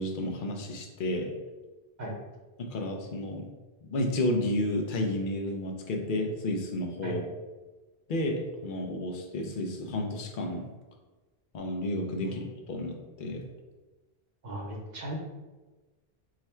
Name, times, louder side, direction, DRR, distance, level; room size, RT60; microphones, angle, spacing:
voice 1, 0.0-1.3 2.6-3.5 3.8-7.2 8.1-10.7 11.5-13.5, left 1 dB, 60° left, 2 dB, 0.8 m, -31 dB
voice 2, 14.4-15.2, right 1 dB, 50° right, -1 dB, 0.9 m, -37 dB
3.7 x 2.2 x 4.3 m, 1.2 s
omnidirectional pair, 1.1 m